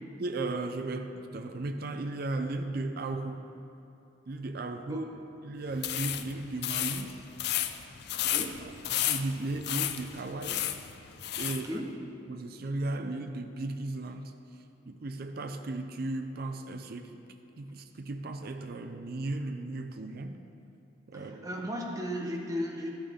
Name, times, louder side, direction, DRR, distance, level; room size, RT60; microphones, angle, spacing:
voice 1, 0.0-3.5 4.3-5.1 5.4-7.2 8.3-10.7 11.4-11.8 12.3-17.3 17.6-20.4 21.1-21.5, right 2 dB, 50° right, 6 dB, 0.5 m, -36 dB
sound 1, 5.7-11.7, left 11 dB, 55° left, 0.4 m, -33 dB
voice 2, 8.1-8.6 11.5-11.9 21.1-22.9, equal, 15° right, 0 dB, 0.8 m, -36 dB
12.0 x 8.8 x 3.6 m, 2.7 s
head